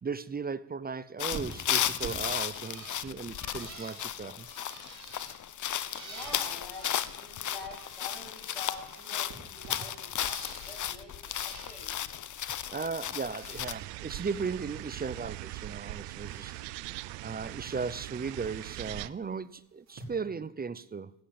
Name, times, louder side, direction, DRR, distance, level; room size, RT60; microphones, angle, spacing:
voice 1, 0.0-4.5 12.7-16.5 17.2-21.1, right 5 dB, 20° right, 0.6 m, -36 dB
sound 1, 1.2-13.7, left 10 dB, 45° left, 0.9 m, -35 dB
Bird, 1.3-8.1 8.3-10.9 11.2-12.0 12.4-13.7 14.0-15.3 15.6-16.7 17.0-17.5 18.7-18.9 19.9-20.0, right 4 dB, 40° right, 4.9 m, -49 dB
voice 2, 6.0-11.9, left 2 dB, 15° left, 7.7 m, -46 dB
sound 2, 13.6-19.1, right 18 dB, 90° right, 0.7 m, -41 dB
14.5 x 9.9 x 8.7 m
cardioid pair, 90°, 42 cm